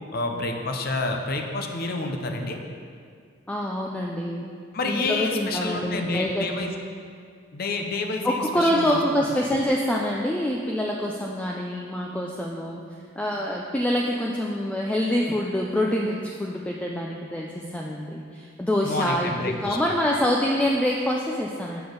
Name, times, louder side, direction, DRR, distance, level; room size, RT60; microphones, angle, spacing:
voice 1, 0.1-2.6 4.7-6.7 7.5-9.0 18.9-19.9, left 3 dB, 50° left, 4 dB, 0.7 m, -29 dB
voice 2, 3.5-4.4 4.9-6.7 8.2-12.9 13.2-21.8, equal, 5° left, -2 dB, 0.3 m, -26 dB
6.8 x 6.1 x 5.1 m, 2.2 s
head